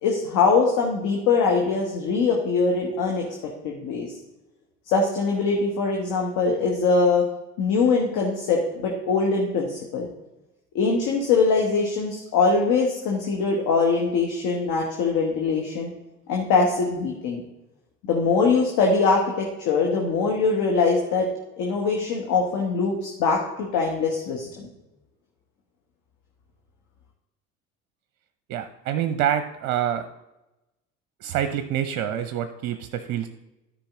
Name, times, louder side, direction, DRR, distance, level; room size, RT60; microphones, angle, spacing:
voice 1, 0.0-3.3 3.6-4.1 4.9-7.3 7.6-10.1 10.7-15.9 16.3-17.4 18.0-21.3 21.6-24.7, left 4 dB, 50° left, 0 dB, 1.6 m, -22 dB
voice 2, 28.5-30.1 31.2-33.3, right 10 dB, 45° right, 9 dB, 0.7 m, -26 dB
13.0 x 5.0 x 3.8 m, 0.95 s
figure-of-eight pair, 65°, 41 cm